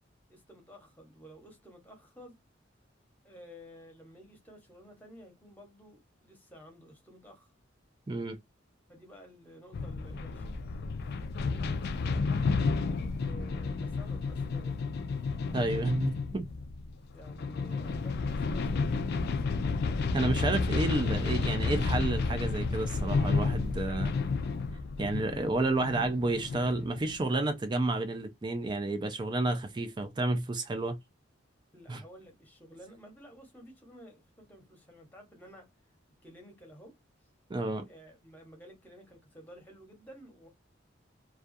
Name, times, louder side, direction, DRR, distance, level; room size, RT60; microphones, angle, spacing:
voice 1, 0.3-2.4 3.2-7.5 8.9-10.5 11.4-12.5 13.1-14.8 17.1-19.7 31.7-35.7 36.2-36.9 37.8-40.5, equal, 10° left, 0.9 m, -53 dB
voice 2, 8.1-8.4 15.5-16.5 20.1-24.1 25.0-31.0 31.9-32.0 37.5-37.9, right 2 dB, 25° right, 0.4 m, -30 dB
sound 1, 9.7-27.2, left 4 dB, 55° left, 0.3 m, -31 dB
2.3 x 2.2 x 2.6 m
head